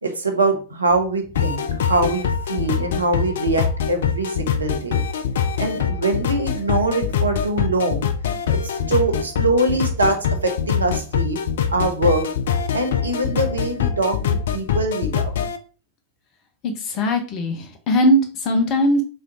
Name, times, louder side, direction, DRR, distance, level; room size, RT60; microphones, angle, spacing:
voice 1, 0.0-5.0 5.6-8.1 8.5-11.4 11.7-12.3 12.7-15.3, right 2 dB, 75° right, 4 dB, 0.9 m, -23 dB
sound 1, 1.4-15.6, left 7 dB, 60° left, 0.5 m, -23 dB
voice 2, 16.6-19.0, equal, 40° left, 6 dB, 1.0 m, -20 dB
4.4 x 3.7 x 2.9 m, 0.35 s
figure-of-eight pair, 90°, 0 cm